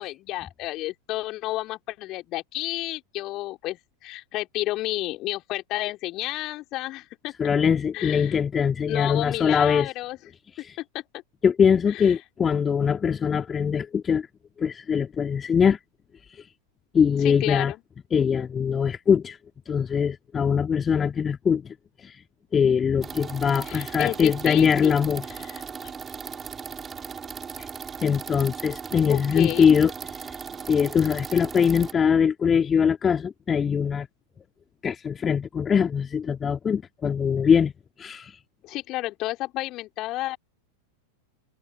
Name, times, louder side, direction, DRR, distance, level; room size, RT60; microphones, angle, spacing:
voice 1, 0.0-7.3 7.9-8.4 8.9-10.2 10.8-11.0 11.9-12.2 17.2-17.8 23.6-25.0 25.4-25.6 29.0-29.8 38.6-40.4, left 17 dB, 35° left, 3.8 m, -31 dB
voice 2, 7.4-9.9 10.6-10.8 11.4-14.3 14.6-15.8 16.9-17.7 18.1-19.4 19.7-21.7 22.0-22.2 22.5-25.2 28.0-29.9 30.2-30.3 30.7-34.1 34.8-37.7 38.0-38.4, left 7 dB, 20° left, 2.4 m, -22 dB
sound 1, 23.0-31.9, right 6 dB, 20° right, 2.9 m, -37 dB
figure-of-eight pair, 90°, 0 cm